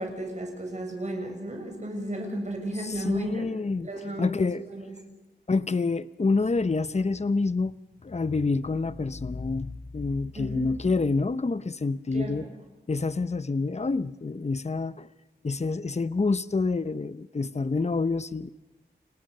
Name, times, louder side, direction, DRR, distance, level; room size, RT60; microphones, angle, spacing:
voice 1, 0.0-3.5 3.8-5.0 10.3-10.7 12.1-12.5, right 1 dB, 40° right, 2 dB, 7.3 m, -34 dB
voice 2, 2.8-3.9 4.2-4.6 5.5-7.7 8.0-12.5 12.9-15.1 15.4-18.5, left 3 dB, 40° left, 15 dB, 0.8 m, -27 dB
30.0 x 19.5 x 6.7 m, 1.0 s
wide cardioid pair, 65°, 18 cm